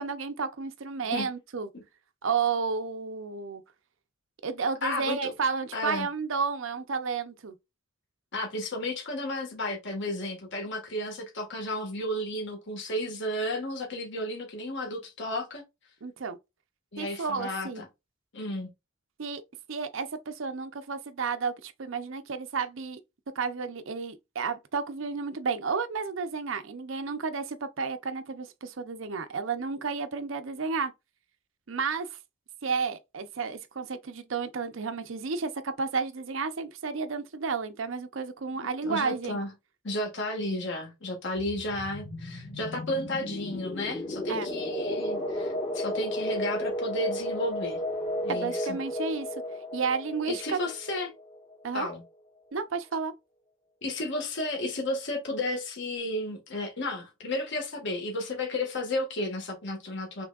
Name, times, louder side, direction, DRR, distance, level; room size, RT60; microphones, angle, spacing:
voice 1, 0.0-1.7 2.2-3.6 4.4-7.6 16.0-16.4 17.0-17.8 19.2-19.4 19.7-23.0 23.3-30.9 31.7-32.1 32.6-39.4 44.3-44.5 48.3-49.3 49.7-50.6 51.6-51.9 52.5-53.1, right 5 dB, 70° right, 0.7 m, -32 dB
voice 2, 4.8-5.3 5.7-6.1 8.3-15.6 16.9-17.8 18.3-18.7 38.5-39.5 39.8-47.8 48.2-48.8 50.3-51.1 51.7-52.0 53.8-60.2, left 1 dB, 60° left, 1.6 m, -33 dB
sound 1, 41.4-51.9, left 1 dB, 30° left, 1.2 m, -34 dB
6.0 x 3.3 x 2.4 m
head